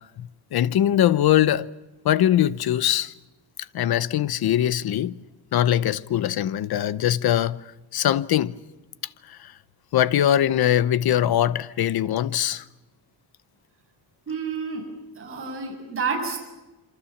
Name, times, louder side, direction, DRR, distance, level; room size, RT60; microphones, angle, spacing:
voice 1, 0.2-1.7 2.0-3.1 3.7-5.1 5.5-7.6 7.9-8.5 9.9-12.6, left 11 dB, 60° left, 0.9 m, -21 dB
voice 2, 14.3-14.9 15.1-16.4, right 5 dB, 30° right, 7.1 m, -29 dB
27.5 x 24.5 x 7.2 m
wide cardioid pair, 165°, 42 cm